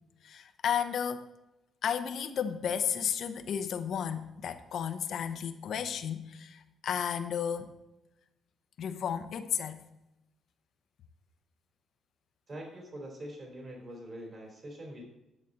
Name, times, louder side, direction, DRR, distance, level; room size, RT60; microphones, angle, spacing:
voice 1, 0.2-1.3 1.8-7.7 8.8-9.8, left 8 dB, 65° left, 9 dB, 0.8 m, -33 dB
voice 2, 12.5-15.0, right 1 dB, 40° right, 0 dB, 3.4 m, -44 dB
11.0 x 7.3 x 3.9 m, 0.94 s
cardioid pair, 90°, 0 cm